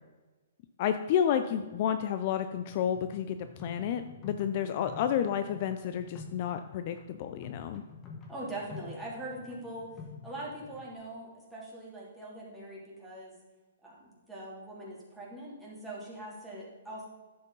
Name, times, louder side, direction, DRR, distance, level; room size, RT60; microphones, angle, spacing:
voice 1, 0.8-7.8, left 9 dB, 45° left, 9 dB, 0.5 m, -30 dB
sound 1, 2.7-10.9, left 5 dB, 25° left, 1.6 m, -49 dB
voice 2, 8.3-9.9 10.2-13.3 13.8-17.1, right 1 dB, ahead, -7 dB, 3.1 m, -42 dB
10.5 x 7.8 x 4.0 m, 1.2 s
hypercardioid pair, 145°, 0 cm